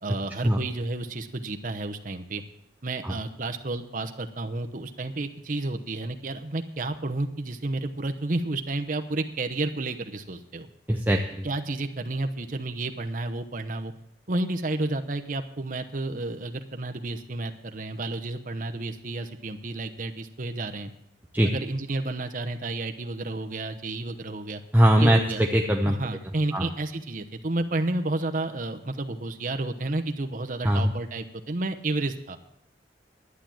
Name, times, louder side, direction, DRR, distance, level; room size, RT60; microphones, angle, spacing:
voice 1, 0.0-2.4 2.8-10.7 11.4-13.9 14.3-20.9 21.4-24.6 25.0-25.4 25.8-32.4, right 2 dB, 50° right, 6 dB, 0.9 m, -31 dB
voice 2, 10.9-11.4 21.3-21.5 24.7-26.0 26.5-26.7 30.6-30.9, equal, 10° right, 2 dB, 0.6 m, -21 dB
11.5 x 8.7 x 7.7 m, 0.79 s
head